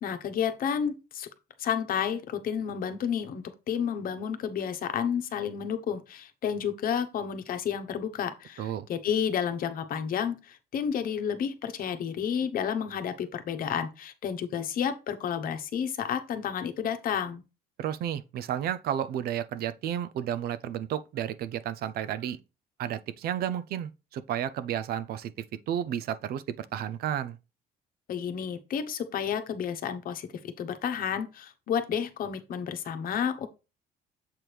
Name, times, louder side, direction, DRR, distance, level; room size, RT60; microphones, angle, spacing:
voice 1, 0.0-1.3 1.6-17.4 28.1-33.5, left 8 dB, 60° left, 1.0 m, -31 dB
voice 2, 17.8-22.4 22.8-25.3 25.7-27.4, right 10 dB, 65° right, 0.5 m, -32 dB
7.6 x 4.5 x 3.3 m
cardioid pair, 110°, 17 cm